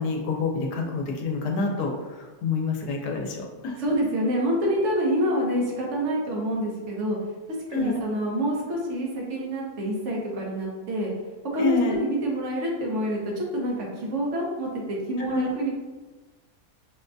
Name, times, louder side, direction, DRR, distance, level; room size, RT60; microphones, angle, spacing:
voice 1, 0.0-3.8 7.7-8.0 11.6-12.0 15.3-15.5, left 3 dB, 90° left, 1 dB, 1.2 m, -27 dB
voice 2, 3.8-7.2 7.7-11.1 11.5-15.7, equal, 55° right, -2 dB, 1.1 m, -27 dB
5.8 x 2.2 x 2.6 m, 1.2 s
omnidirectional pair, 1.7 m